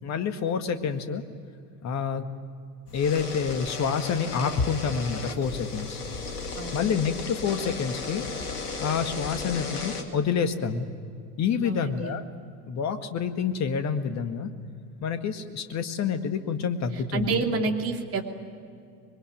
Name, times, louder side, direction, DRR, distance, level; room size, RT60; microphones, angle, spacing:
voice 1, 0.0-1.2 1.8-2.3 2.9-6.0 6.7-8.2 8.8-10.9 11.4-12.2 12.7-14.5 15.0-17.5, left 6 dB, 35° left, 8 dB, 1.9 m, -28 dB
sound 1, 2.9-10.0, left 4 dB, 75° left, 2.5 m, -35 dB
voice 2, 6.6-6.9 11.6-12.2 17.1-18.2, right 4 dB, 30° right, 3 dB, 2.9 m, -29 dB
26.0 x 22.0 x 9.4 m, 2.3 s
figure-of-eight pair, 75°, 47 cm